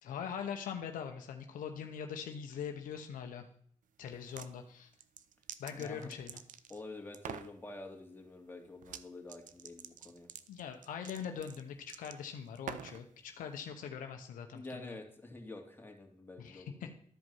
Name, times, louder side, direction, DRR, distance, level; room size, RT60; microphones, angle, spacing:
voice 1, 0.0-3.5 4.0-4.9 5.6-6.4 10.5-15.0 16.4-16.9, left 7 dB, 90° left, 5 dB, 0.8 m, -42 dB
sound 1, 4.1-4.5 5.0-6.8 7.1-7.5 8.8-9.0 9.3-13.0, right 9 dB, 75° right, 0.5 m, -47 dB
voice 2, 5.7-6.1 6.7-10.3 14.5-16.9, left 2 dB, 15° left, 1 dB, 2.5 m, -48 dB
12.5 x 5.1 x 5.5 m, 0.63 s
supercardioid pair, 55°, 13 cm